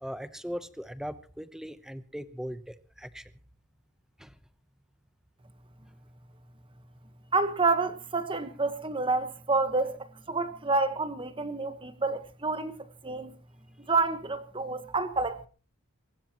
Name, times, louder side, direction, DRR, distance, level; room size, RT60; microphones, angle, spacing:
voice 1, 0.0-3.3 4.2-4.4, equal, ahead, 0.9 m, -39 dB
voice 2, 7.3-12.8 13.0-13.3 13.9-15.4, right 3 dB, 25° right, 1.3 m, -28 dB
23.5 x 19.0 x 3.0 m
head